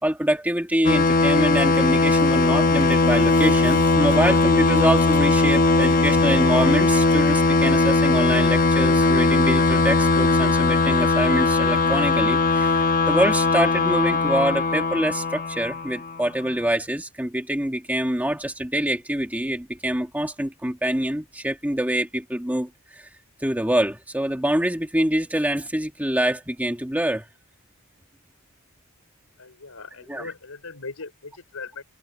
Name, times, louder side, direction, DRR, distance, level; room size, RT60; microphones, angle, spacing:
voice 1, 0.0-23.1 23.4-27.3 30.1-30.3, right 1 dB, 5° right, 2.1 m, -25 dB
sound 1, 0.8-16.2, left 3 dB, 40° left, 1.3 m, -19 dB
voice 2, 29.4-31.1 31.5-31.8, left 4 dB, 75° left, 4.3 m, -38 dB
head